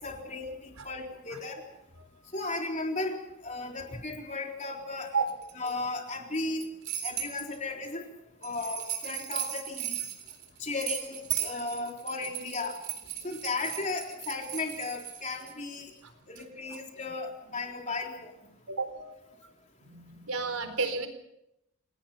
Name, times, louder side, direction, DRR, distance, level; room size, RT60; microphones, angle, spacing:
voice 1, 0.0-1.6 2.3-3.2 3.4-5.1 5.6-6.7 7.0-8.0 8.4-10.0 10.6-12.8 13.2-15.9 16.3-18.3, left 3 dB, 30° left, 1 dB, 3.8 m, -35 dB
sound 1, 5.3-5.7 6.3-7.6 8.4-15.5, right 11 dB, 50° right, 3.7 m, -36 dB
voice 2, 18.7-19.3 19.8-21.1, right 4 dB, 80° right, 8 dB, 4.1 m, -32 dB
28.5 x 18.5 x 5.7 m, 0.83 s
head